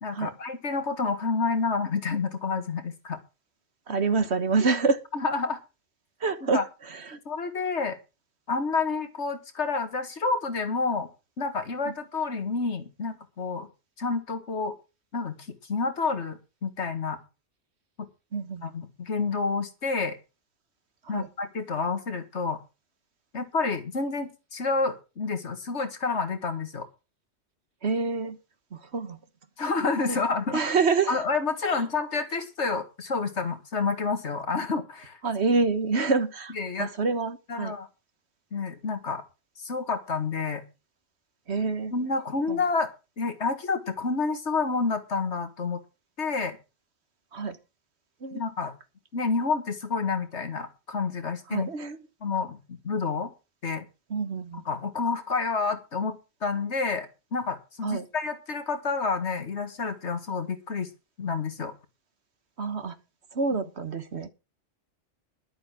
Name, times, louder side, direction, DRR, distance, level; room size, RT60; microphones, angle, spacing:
voice 1, 0.0-3.2 5.1-5.6 6.4-6.6 7.3-8.0 8.5-11.1 11.4-13.7 14.0-14.7 15.1-17.2 18.0-18.1 18.6-20.2 21.1-22.6 23.3-26.9 29.6-30.6 31.1-35.2 36.5-36.9 37.5-37.9 38.5-39.2 39.6-40.6 41.9-42.9 43.2-45.8 46.2-46.6 48.3-48.7 49.1-51.7 52.2-53.3 53.6-53.9 54.7-60.9 61.2-61.7, left 4 dB, 65° left, 9 dB, 2.0 m, -29 dB
voice 2, 3.9-5.0 6.2-7.2 18.3-18.6 21.0-21.3 27.8-28.4 28.7-29.2 30.1-30.2 30.5-31.2 31.6-31.7 35.2-37.7 41.5-41.9 42.5-42.6 47.3-47.6 48.2-48.4 51.5-52.0 54.1-54.6 57.8-58.0 62.6-62.9 63.3-64.3, right 4 dB, 60° right, 11 dB, 1.6 m, -27 dB
11.5 x 8.8 x 6.1 m, 0.30 s
omnidirectional pair, 1.3 m